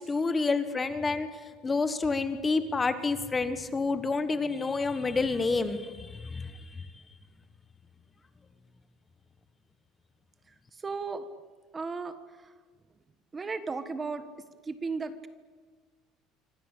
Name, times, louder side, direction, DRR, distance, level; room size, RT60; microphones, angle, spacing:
voice 1, 0.0-7.0, left 3 dB, 15° left, 10 dB, 1.3 m, -29 dB
voice 2, 10.7-11.3 11.7-12.2 12.4-12.5 13.3-14.3 14.6-15.3, right 4 dB, 15° right, 11 dB, 1.4 m, -35 dB
26.0 x 26.0 x 8.4 m, 1.4 s
cardioid pair, 165°, 0 cm